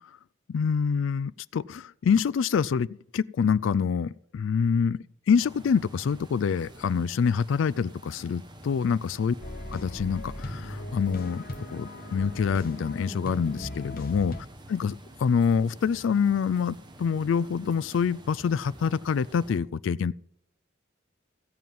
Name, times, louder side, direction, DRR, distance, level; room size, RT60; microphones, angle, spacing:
voice 1, 0.5-2.9 3.1-5.0 5.3-9.3 9.7-11.4 11.7-14.4 14.7-20.1, left 6 dB, 80° left, 0.3 m, -26 dB
sound 1, 5.4-19.6, right 1 dB, 25° right, 1.3 m, -48 dB
sound 2, 9.4-14.4, left 1 dB, 45° left, 1.1 m, -38 dB
15.5 x 7.7 x 5.4 m
head